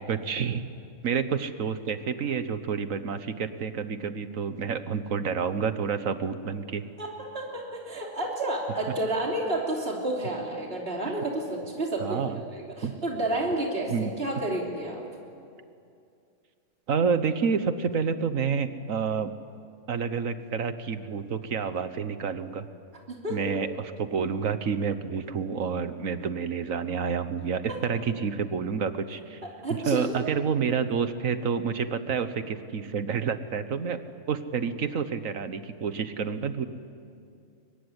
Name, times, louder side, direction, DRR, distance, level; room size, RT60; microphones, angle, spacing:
voice 1, 0.1-0.6 1.0-6.8 12.0-12.4 12.8-12.9 13.9-14.1 16.9-19.3 19.9-22.7 23.3-29.4 29.7-34.0 34.3-36.7, right 6 dB, 80° right, 11 dB, 1.6 m, -29 dB
voice 2, 7.0-15.0 23.1-23.5 29.4-30.1, right 1 dB, 45° right, -1 dB, 3.5 m, -30 dB
24.0 x 22.5 x 9.9 m, 2.5 s
omnidirectional pair, 1.4 m